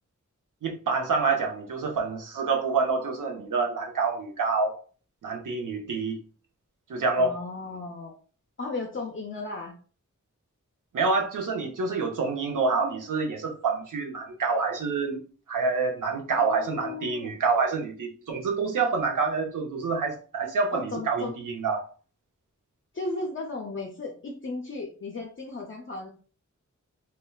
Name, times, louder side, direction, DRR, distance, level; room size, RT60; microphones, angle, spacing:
voice 1, 0.6-4.7 5.2-6.2 6.9-7.4 10.9-15.2 15.5-21.8, right 4 dB, 90° right, 0.7 m, -27 dB
voice 2, 7.2-8.1 8.6-9.8 16.3-17.3 20.7-21.3 22.9-26.1, left 3 dB, 40° left, 0.5 m, -35 dB
3.1 x 2.2 x 2.3 m
wide cardioid pair, 95°, 30 cm